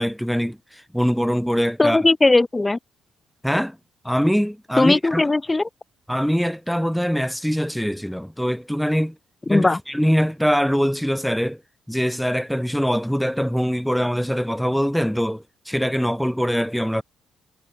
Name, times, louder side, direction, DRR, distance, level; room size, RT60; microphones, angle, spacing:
voice 1, 0.0-2.0 3.4-3.8 4.0-5.2 6.1-9.2 9.5-11.6 11.9-17.0, equal, ahead, 1.4 m, -23 dB
voice 2, 1.8-2.8 4.8-5.7 9.5-9.8, left 2 dB, 20° left, 0.7 m, -18 dB
cardioid pair, 90°, 0 cm